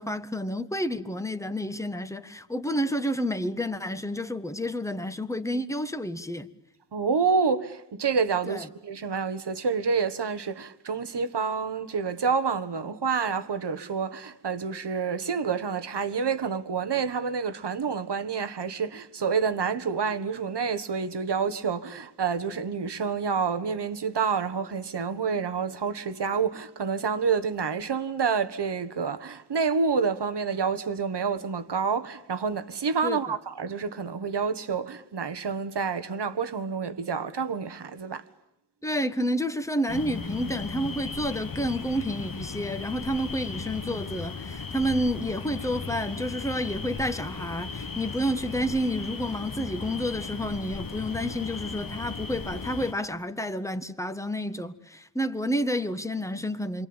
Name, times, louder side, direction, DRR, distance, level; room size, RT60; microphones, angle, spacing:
voice 1, 0.0-6.5 8.5-8.7 33.0-33.2 38.8-56.9, equal, 5° left, 1.6 m, -30 dB
voice 2, 6.9-38.2, right 5 dB, 85° right, 1.5 m, -28 dB
sound 1, 39.9-52.9, left 4 dB, 55° left, 1.6 m, -36 dB
28.5 x 23.5 x 8.9 m
wide cardioid pair, 75°, 40 cm